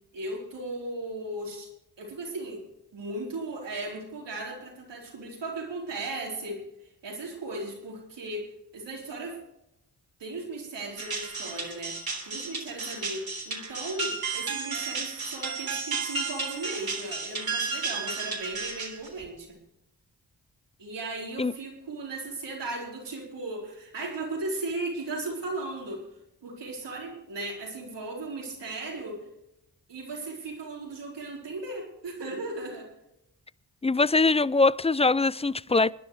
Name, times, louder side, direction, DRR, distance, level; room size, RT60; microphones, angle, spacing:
voice 1, 0.1-1.7 2.0-2.6 2.9-6.6 7.0-8.5 8.7-9.4 10.2-12.0 12.2-19.6 20.8-26.0 26.4-29.2 29.9-32.9, right 2 dB, 80° right, 4.5 m, -36 dB
sound 1, 11.0-19.2, right 4 dB, 60° right, 3.5 m, -33 dB
voice 2, 33.8-35.9, left 3 dB, 15° left, 0.4 m, -22 dB
26.0 x 10.5 x 3.3 m
supercardioid pair, 40°, 41 cm